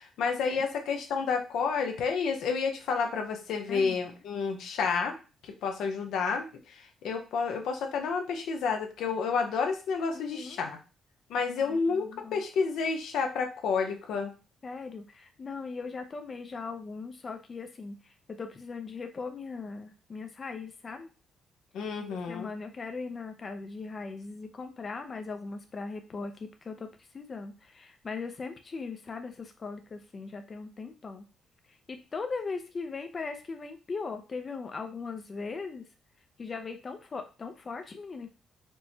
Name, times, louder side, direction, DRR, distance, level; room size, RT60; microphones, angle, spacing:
voice 1, 0.0-5.1 5.4-10.8 11.3-14.3 21.7-22.5, left 5 dB, 80° left, 4 dB, 0.6 m, -30 dB
voice 2, 3.7-4.0 10.1-10.6 11.6-12.4 14.6-21.1 22.3-26.9 27.1-31.2 31.9-35.8 36.4-38.3, left 4 dB, 35° left, 6 dB, 0.5 m, -39 dB
4.5 x 2.1 x 2.7 m, 0.32 s
cardioid pair, 90°, 0 cm